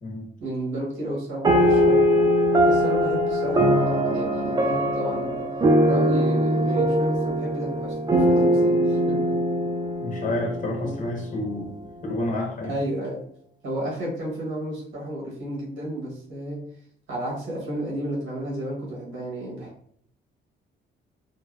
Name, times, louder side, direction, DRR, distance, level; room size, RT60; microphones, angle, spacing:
voice 1, 0.4-2.0 2.6-5.5 5.8-9.3 10.8-10.9 12.6-13.2 13.6-16.6 17.1-19.7, right 1 dB, 70° right, 1.1 m, -32 dB
sound 1, 1.4-11.2, equal, 20° right, 0.3 m, -21 dB
voice 2, 10.0-11.7 12.0-12.7, left 2 dB, 40° left, 0.9 m, -29 dB
2.6 x 2.0 x 2.3 m
cardioid pair, 90°, 20 cm